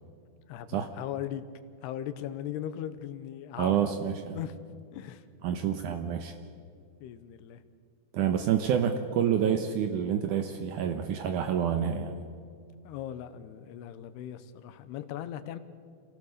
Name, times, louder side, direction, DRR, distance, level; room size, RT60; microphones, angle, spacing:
voice 1, 0.5-1.4 1.8-4.5 4.9-5.2 7.0-7.6 12.8-15.6, left 11 dB, 80° left, 12 dB, 2.9 m, -39 dB
voice 2, 3.6-4.4 5.4-6.3 8.1-12.2, right 8 dB, 90° right, 7 dB, 1.8 m, -28 dB
27.0 x 17.0 x 6.7 m, 2.2 s
omnidirectional pair, 4.9 m